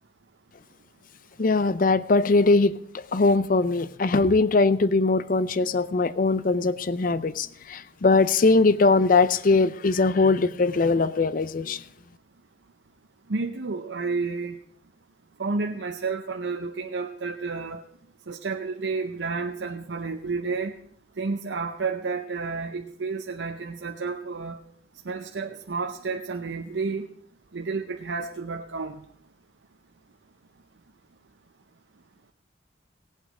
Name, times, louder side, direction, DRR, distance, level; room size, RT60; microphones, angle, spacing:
voice 1, 1.4-11.8, left 3 dB, 50° left, 0.5 m, -21 dB
voice 2, 13.3-14.6 15.4-17.8 18.3-20.7 21.2-24.6 25.1-27.1 27.5-29.0, right 4 dB, 80° right, 0.7 m, -31 dB
17.5 x 8.1 x 4.9 m
head